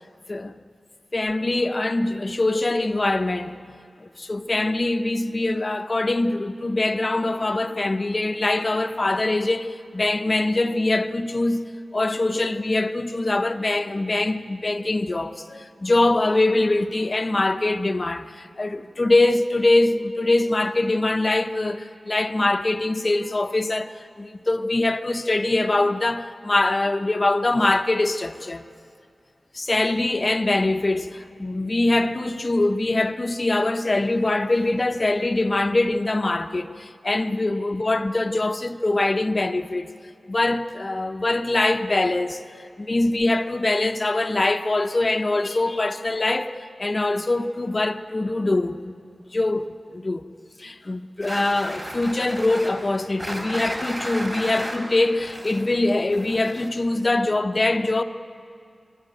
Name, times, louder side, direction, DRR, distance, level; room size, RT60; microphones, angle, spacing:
voice 1, 0.3-0.6 1.1-3.6 4.0-28.6 29.5-39.9 40.3-42.4 42.8-49.0 49.3-50.2 50.6-58.0, left 2 dB, 40° left, 0.8 m, -23 dB
sound 1, 51.2-56.9, equal, 25° right, 4.2 m, -34 dB
23.0 x 13.0 x 9.1 m
wide cardioid pair, 70°, 0 cm